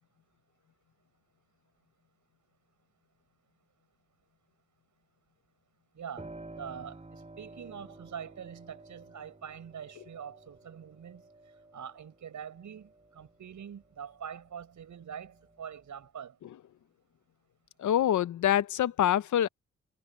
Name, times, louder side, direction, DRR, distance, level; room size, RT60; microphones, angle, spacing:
voice 1, 5.9-11.3 11.7-16.4, right 8 dB, 80° right, 6.8 m, -44 dB
Piano, 6.2-14.6 15.0-16.1, right 2 dB, 25° right, 7.7 m, -52 dB
voice 2, 17.8-19.5, left 11 dB, 80° left, 0.7 m, -25 dB
cardioid pair, 70°, 29 cm